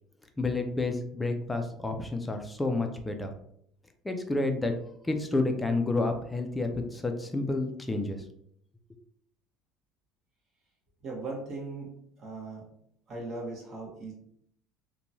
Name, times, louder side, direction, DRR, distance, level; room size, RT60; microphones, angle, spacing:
voice 1, 0.4-3.3 4.0-4.7 5.0-8.2, left 2 dB, 10° left, 5 dB, 0.4 m, -30 dB
voice 2, 11.0-11.9 12.2-12.6 13.1-14.1, right 3 dB, 40° right, -3 dB, 1.1 m, -38 dB
3.0 x 2.2 x 2.6 m, 0.69 s
cardioid pair, 140°, 0 cm